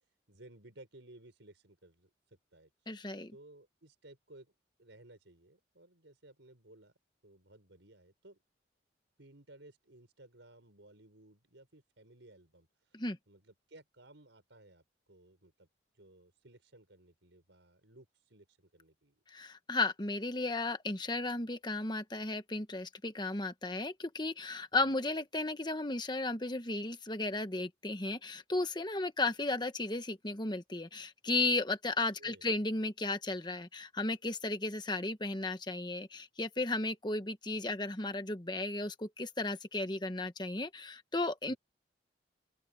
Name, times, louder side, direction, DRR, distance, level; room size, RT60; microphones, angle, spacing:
voice 1, 0.3-2.7 3.3-4.5 4.8-6.9 7.2-8.4 9.2-13.0 13.3-15.7 15.9-19.2 24.7-25.0 32.2-32.5 41.5-41.6, right 1 dB, 85° right, 5.0 m, -58 dB
voice 2, 2.9-3.3 12.9-13.2 19.3-41.5, left 2 dB, 25° left, 1.3 m, -34 dB
open air
head